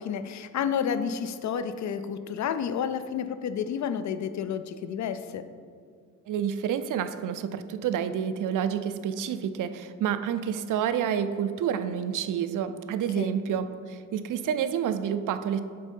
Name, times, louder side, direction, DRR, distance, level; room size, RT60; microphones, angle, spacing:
voice 1, 0.0-5.5 13.2-13.3, left 7 dB, 65° left, 11 dB, 0.4 m, -30 dB
voice 2, 6.3-15.6, right 8 dB, 80° right, 11 dB, 0.5 m, -29 dB
7.6 x 3.7 x 5.3 m, 2.1 s
wide cardioid pair, 120°, 31 cm